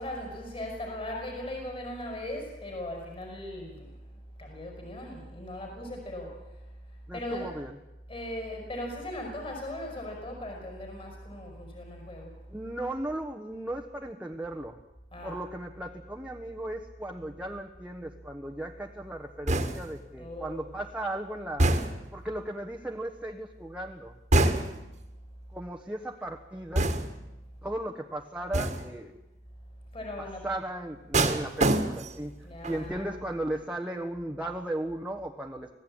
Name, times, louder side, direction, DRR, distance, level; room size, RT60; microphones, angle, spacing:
voice 1, 0.0-7.6 8.1-12.5 15.1-15.4 20.2-20.7 24.6-24.8 29.9-30.5 32.4-33.3, left 1 dB, 30° left, 1 dB, 5.5 m, -39 dB
voice 2, 7.1-7.7 12.5-14.8 15.2-21.7 22.1-24.6 25.5-26.9 27.6-29.1 30.2-32.3 32.6-35.7, right 1 dB, 5° right, 1 dB, 1.3 m, -36 dB
sound 1, 19.5-20.0 21.6-22.2 24.3-24.9 26.8-27.3 28.5-29.0 31.1-32.3 32.6-33.0, right 2 dB, 40° right, 1.9 m, -26 dB
26.0 x 16.5 x 8.9 m, 1.0 s
head